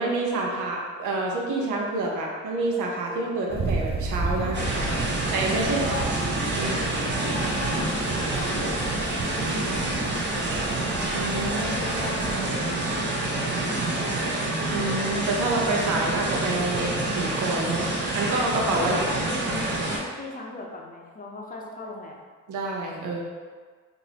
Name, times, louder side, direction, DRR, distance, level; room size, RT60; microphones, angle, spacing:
voice 1, 0.0-4.6 5.3-6.0 6.6-6.8 8.6-8.7 11.1-11.7 14.7-17.9 18.1-19.0 22.5-23.2, right 2 dB, 80° right, -1 dB, 0.7 m, -28 dB
sound 1, 3.5-12.3, right 3 dB, 20° right, 0.4 m, -33 dB
sound 2, 4.5-20.0, right 2 dB, 35° right, 0.9 m, -27 dB
voice 2, 7.1-10.8 11.5-14.3 18.8-22.2, left 2 dB, 30° left, -1 dB, 0.6 m, -38 dB
3.8 x 2.6 x 2.8 m, 1.5 s
cardioid pair, 90°, 30 cm